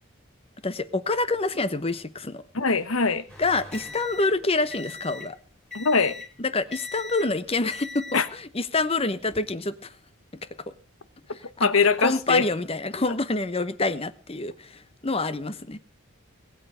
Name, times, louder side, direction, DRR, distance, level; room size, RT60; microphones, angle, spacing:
voice 1, 0.6-2.4 3.4-5.4 6.4-9.9 10.7-10.8 11.6-11.7 12.0-15.8, left 3 dB, 25° left, 0.9 m, -27 dB
voice 2, 2.5-3.3 5.7-6.2 8.1-8.3 11.6-12.5, left 4 dB, 75° left, 1.2 m, -22 dB
sound 1, 3.3-5.3 5.7-6.3 6.7-7.3 7.7-8.3 9.1-9.4, left 3 dB, 5° left, 3.9 m, -40 dB
21.0 x 9.0 x 5.0 m
head